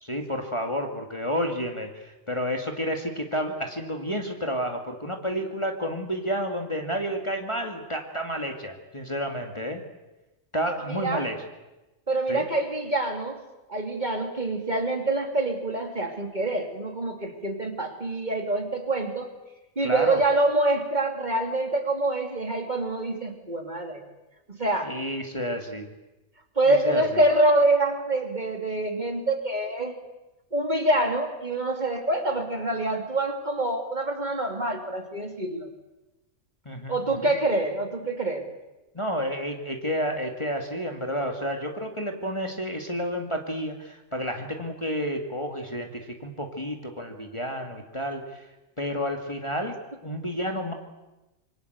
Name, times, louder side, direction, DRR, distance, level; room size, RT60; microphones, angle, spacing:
voice 1, 0.0-9.8 10.5-11.4 12.3-12.5 19.8-20.2 24.8-25.9 26.7-27.2 36.7-37.3 38.9-48.5 48.8-49.8 50.0-50.7, equal, 20° left, 3 dB, 2.3 m, -30 dB
voice 2, 10.9-11.2 12.1-13.4 13.7-19.3 19.8-24.0 24.5-24.9 26.6-30.0 30.5-35.7 36.9-38.4, right 2 dB, 35° right, 4 dB, 2.9 m, -26 dB
26.0 x 24.0 x 8.1 m, 1.0 s
omnidirectional pair, 1.4 m